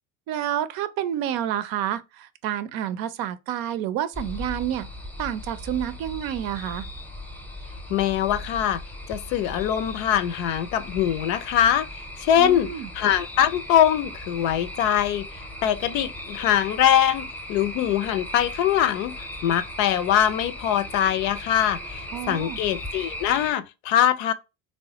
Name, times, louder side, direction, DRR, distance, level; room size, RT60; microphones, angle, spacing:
voice 1, 0.3-4.9 5.2-6.9 12.4-12.9 22.1-22.6, right 11 dB, 60° right, 0.5 m, -29 dB
sound 1, 4.1-23.5, left 1 dB, 5° left, 0.6 m, -38 dB
voice 2, 7.9-8.8 9.1-11.9 12.2-12.7 13.0-15.3 15.6-24.3, left 10 dB, 70° left, 0.5 m, -22 dB
3.1 x 2.1 x 2.8 m
hypercardioid pair, 80°, 41 cm